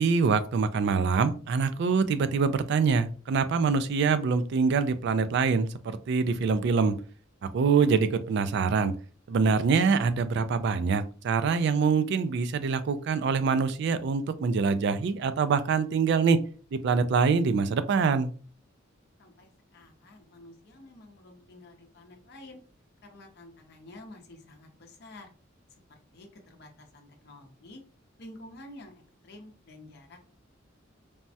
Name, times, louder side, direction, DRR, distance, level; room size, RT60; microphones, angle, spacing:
voice 1, 0.0-7.0 7.4-8.9 9.3-16.4 16.7-18.3, right 5 dB, 60° right, 12 dB, 0.3 m, -25 dB
voice 2, 19.2-22.6 23.1-25.3 26.1-27.8 28.2-30.3, left 1 dB, 55° left, 3 dB, 0.6 m, -50 dB
3.3 x 2.1 x 2.7 m, 0.40 s
head